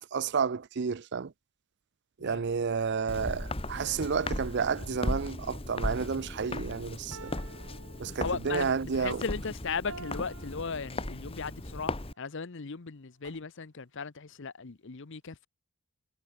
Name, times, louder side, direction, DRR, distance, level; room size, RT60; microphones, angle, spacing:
voice 1, 0.1-1.3 2.2-7.3 8.0-9.2, right 5 dB, 50° right, 0.5 m, -31 dB
Walk footsteps, 3.1-12.1, left 1 dB, 25° left, 2.0 m, -37 dB
sound 1, 3.7-5.6 7.1-8.7 9.9-11.6, right 3 dB, 75° right, 3.5 m, -50 dB
voice 2, 8.1-15.5, left 5 dB, 55° left, 0.8 m, -37 dB
head